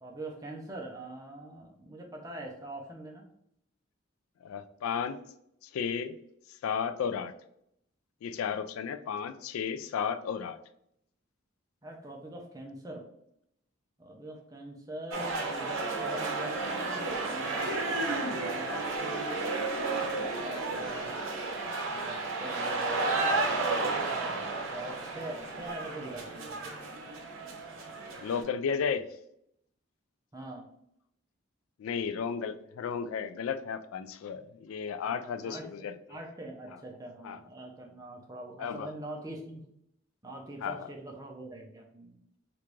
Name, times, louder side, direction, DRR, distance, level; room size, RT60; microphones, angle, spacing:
voice 1, 0.0-3.2 7.0-7.1 11.8-13.1 14.0-19.5 20.0-21.1 21.9-26.9 30.3-30.7 35.1-39.6 40.2-42.2, right 1 dB, 15° right, 1 dB, 0.5 m, -43 dB
voice 2, 4.4-5.2 5.6-6.2 6.6-7.3 8.2-10.6 28.2-29.0 31.8-35.9 36.7-36.8 37.2-37.4 38.6-38.9 40.6-40.9, left 6 dB, 90° left, 12 dB, 0.3 m, -33 dB
sound 1, 15.1-28.4, right 3 dB, 75° right, 0.7 m, -32 dB
3.3 x 2.5 x 3.0 m, 0.74 s
head